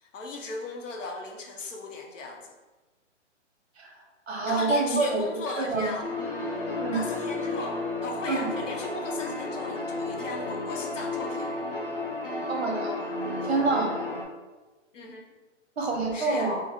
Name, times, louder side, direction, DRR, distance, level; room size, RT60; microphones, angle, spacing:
voice 1, 0.0-2.5 4.4-6.1 6.9-7.8 8.0-11.6 14.9-15.2 16.1-16.5, left 3 dB, 85° left, 2 dB, 0.9 m, -37 dB
voice 2, 4.3-5.2 5.6-5.9 6.8-7.1 8.3-8.4 12.5-12.9 13.4-13.9 15.8-16.6, right 3 dB, 60° right, 0 dB, 1.0 m, -26 dB
sound 1, 6.0-14.2, left 2 dB, 45° left, 0.6 m, -32 dB
3.8 x 2.1 x 3.5 m, 1.2 s
hypercardioid pair, 180°, 37 cm